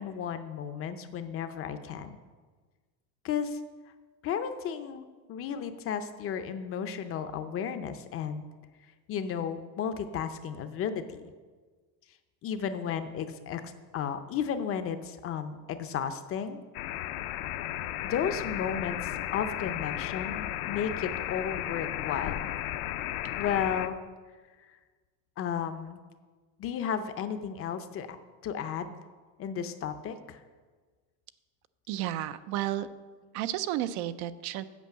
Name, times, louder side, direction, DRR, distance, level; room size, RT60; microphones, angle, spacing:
voice 1, 0.0-2.2 3.2-3.6 4.2-8.4 9.1-11.2 12.4-16.6 18.0-22.4 23.4-24.0 24.6-24.7 25.4-26.0 26.6-28.2 28.4-29.0 29.4-30.4, left 7 dB, 35° left, 9 dB, 0.5 m, -33 dB
sound 1, 16.7-23.9, left 13 dB, 75° left, 0.7 m, -34 dB
voice 2, 31.9-32.9 33.3-34.6, right 13 dB, 65° right, 13 dB, 0.6 m, -32 dB
8.3 x 5.3 x 7.7 m, 1.4 s
cardioid pair, 145°, 42 cm